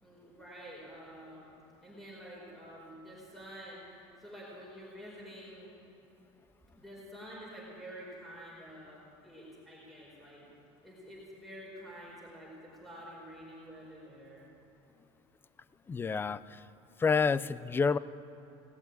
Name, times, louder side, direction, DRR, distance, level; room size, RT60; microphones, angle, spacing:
voice 1, 0.0-1.5 1.8-3.8 4.2-5.7 6.8-10.5 10.8-14.4, equal, ahead, -7 dB, 4.7 m, -48 dB
voice 2, 15.9-16.6 17.0-18.0, left 5 dB, 15° left, 17 dB, 0.4 m, -28 dB
18.0 x 7.9 x 9.2 m, 2.9 s
cardioid pair, 120°, 12 cm